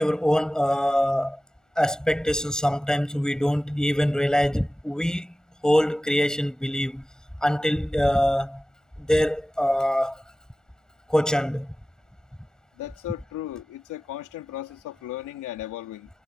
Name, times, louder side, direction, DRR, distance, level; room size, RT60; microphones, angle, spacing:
voice 1, 0.0-1.4 1.8-5.3 5.6-7.1 7.4-8.6 9.0-10.2 11.1-11.7, equal, ahead, 6.3 m, -23 dB
voice 2, 12.8-16.1, left 14 dB, 85° left, 3.8 m, -36 dB
cardioid pair, 90°, 30 cm